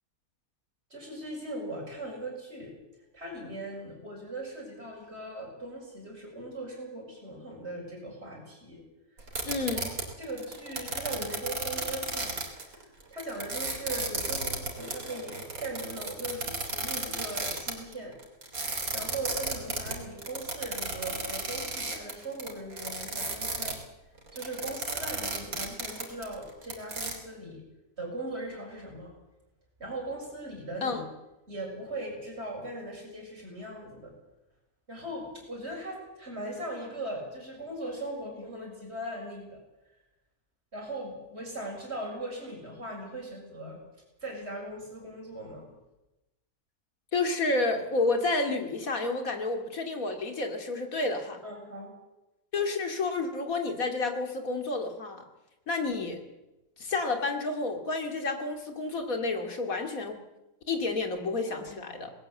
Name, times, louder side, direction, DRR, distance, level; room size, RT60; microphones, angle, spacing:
voice 1, 0.9-2.7 3.1-8.8 9.2-9.3 9.8-9.9 10.2-12.4 12.6-18.1 18.9-23.8 24.3-27.6 28.0-29.1 29.8-31.0 31.5-34.1 34.9-39.6 40.7-43.8 44.2-45.7 51.4-51.9, right 1 dB, 45° right, -1 dB, 7.4 m, -39 dB
sound 1, 9.2-23.7 24.2-27.1, right 2 dB, 75° right, 3.9 m, -33 dB
voice 2, 9.5-9.9 30.8-31.0 47.1-51.4 52.5-55.2 55.7-56.2 56.8-60.2 60.7-62.1, left 3 dB, 70° left, 5 dB, 2.9 m, -30 dB
20.0 x 17.5 x 7.7 m, 0.98 s
omnidirectional pair, 1.5 m